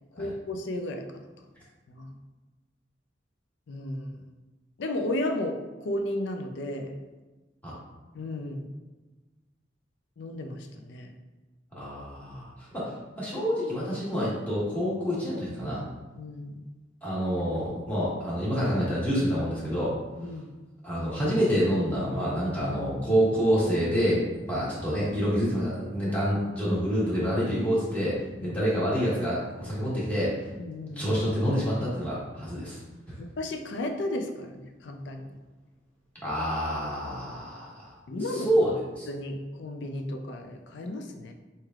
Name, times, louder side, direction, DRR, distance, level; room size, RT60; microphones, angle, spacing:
voice 1, 0.1-1.0 1.9-2.1 3.7-4.2 4.8-6.9 8.1-8.7 10.2-11.1 16.2-16.6 20.2-20.5 24.5-24.6 28.4-28.6 30.6-31.1 33.2-35.3 38.1-38.5 39.1-41.3, left 1 dB, 65° left, 5 dB, 0.4 m, -34 dB
voice 2, 11.7-12.5 12.7-15.9 17.0-19.9 20.8-24.2 24.5-28.2 28.4-30.3 31.0-32.8 36.2-38.0 38.3-39.1, equal, 10° left, -8 dB, 1.3 m, -27 dB
4.3 x 3.2 x 2.4 m, 1.2 s
head